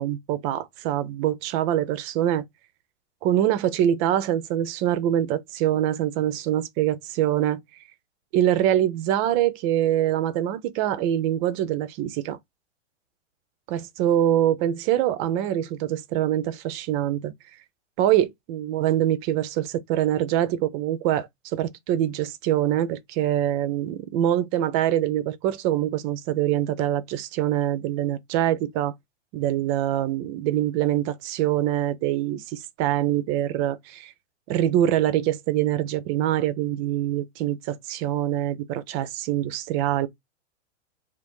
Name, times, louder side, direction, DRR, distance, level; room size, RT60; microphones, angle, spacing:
voice 1, 0.0-2.4 3.2-7.6 8.3-12.4 13.7-17.3 18.0-28.9 29.3-34.1 34.5-40.1, right 12 dB, 30° right, 0.5 m, -24 dB
2.5 x 2.5 x 3.6 m
hypercardioid pair, 130°, 37 cm